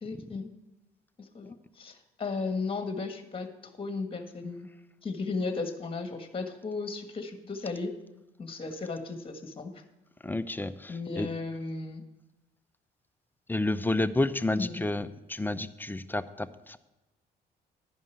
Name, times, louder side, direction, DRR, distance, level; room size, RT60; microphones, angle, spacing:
voice 1, 0.0-0.5 1.2-3.5 3.8-4.7 5.0-7.9 8.4-9.7 10.9-12.0 14.6-14.9, left 4 dB, 30° left, 7 dB, 1.6 m, -35 dB
voice 2, 10.2-11.3 13.5-16.8, left 2 dB, 10° left, 12 dB, 0.6 m, -30 dB
11.5 x 5.4 x 8.1 m, 1.1 s
supercardioid pair, 75°, 18 cm